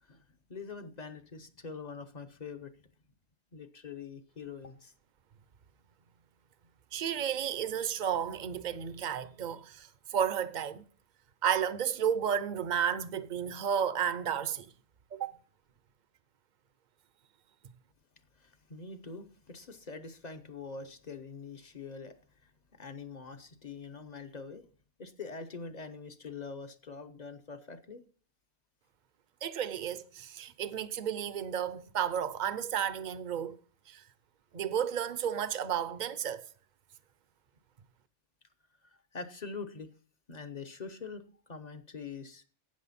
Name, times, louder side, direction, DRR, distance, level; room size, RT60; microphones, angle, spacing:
voice 1, 0.5-2.8 3.5-4.9 18.4-22.2 22.4-24.6 25.0-28.0 38.8-39.9 40.3-42.4, left 4 dB, 40° left, 0.9 m, -44 dB
voice 2, 6.9-10.8 11.4-14.7 15.1-15.4 29.4-33.6 33.9-34.0 34.5-36.4, right 8 dB, 50° right, 0.8 m, -32 dB
12.5 x 8.9 x 4.2 m
omnidirectional pair, 1.1 m